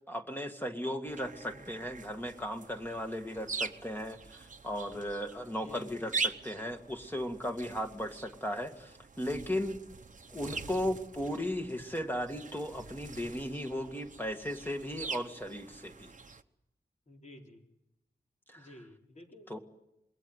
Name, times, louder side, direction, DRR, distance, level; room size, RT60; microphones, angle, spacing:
voice 1, 0.1-9.8 10.3-16.1 18.5-18.7 19.5-19.6, equal, 10° left, 4 dB, 2.1 m, -36 dB
sound 1, 1.1-16.4, right 4 dB, 45° right, 1.0 m, -43 dB
voice 2, 1.3-1.7 5.6-6.0 10.5-10.8 17.1-17.6 18.6-19.6, left 1 dB, 45° left, 1 dB, 4.0 m, -52 dB
26.5 x 21.5 x 8.2 m, 0.87 s
wide cardioid pair, 110°, 17 cm